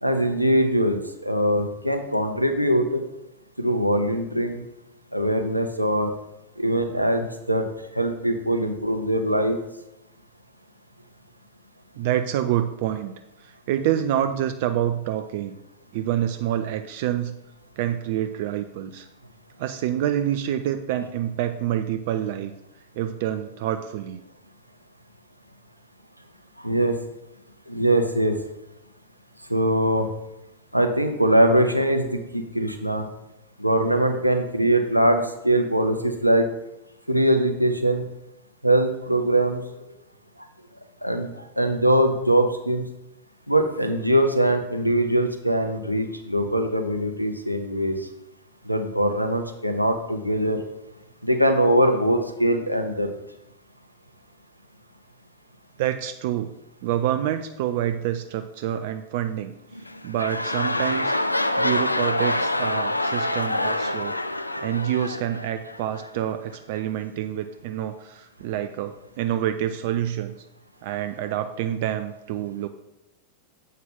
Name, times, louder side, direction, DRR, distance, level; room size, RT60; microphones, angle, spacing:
voice 1, 0.0-3.0 3.6-4.6 5.1-6.1 6.6-7.7 7.9-9.6 26.6-27.0 27.7-28.4 29.5-30.1 30.7-33.1 33.6-36.5 37.1-38.0 38.6-39.6 41.0-42.8 43.5-48.1 48.6-50.6 51.2-53.1, right 1 dB, 90° right, 5 dB, 0.7 m, -22 dB
voice 2, 12.0-13.1 13.4-15.6 15.9-17.4 17.8-19.1 19.6-22.5 23.0-24.2 55.8-56.5 56.8-59.5 60.0-61.1 61.6-64.2 64.6-70.3 70.8-72.7, right 11 dB, 50° right, 9 dB, 0.4 m, -27 dB
sound 1, 59.7-66.1 66.8-66.9, left 1 dB, 85° left, 0.3 m, -26 dB
7.5 x 5.6 x 3.7 m, 0.88 s
figure-of-eight pair, 90°, 0 cm